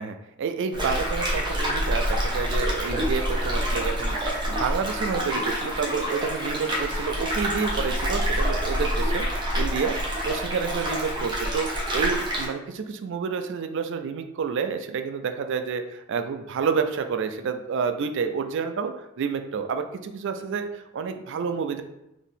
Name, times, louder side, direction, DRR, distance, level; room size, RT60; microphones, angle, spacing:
voice 1, 0.0-4.2 4.5-9.3 9.6-21.8, right 6 dB, 65° right, 8 dB, 0.4 m, -29 dB
sound 1, 0.7-12.5, equal, 20° right, 0.9 m, -27 dB
4.0 x 2.6 x 3.6 m, 0.88 s
head